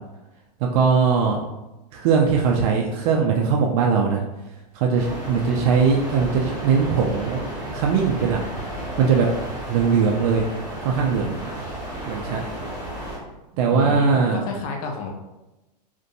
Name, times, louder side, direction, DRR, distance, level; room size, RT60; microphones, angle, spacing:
voice 1, 0.6-1.4 1.9-4.2 4.7-7.5 7.7-8.4 9.0-9.3 9.7-10.5 10.8-11.3 12.1-12.4 13.5-14.4, right 6 dB, 55° right, 0 dB, 0.4 m, -20 dB
sound 1, 4.9-13.2, right 1 dB, 15° right, 1.2 m, -33 dB
voice 2, 13.7-15.1, left 4 dB, 60° left, 2 dB, 0.6 m, -29 dB
2.6 x 2.1 x 2.5 m, 1.0 s
hypercardioid pair, 110°, 21 cm